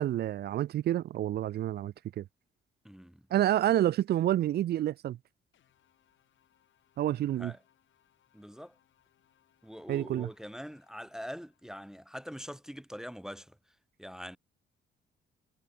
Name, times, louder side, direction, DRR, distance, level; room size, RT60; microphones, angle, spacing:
voice 1, 0.0-2.3 3.3-5.2 7.0-7.5 9.9-10.3, right 12 dB, 55° right, 0.4 m, -28 dB
voice 2, 2.8-3.2 7.4-7.6 8.3-8.7 9.6-13.6 14.0-14.4, equal, 5° right, 0.6 m, -43 dB
sound 1, 5.5-12.0, left 11 dB, 70° left, 5.3 m, -72 dB
cardioid pair, 90°, 20 cm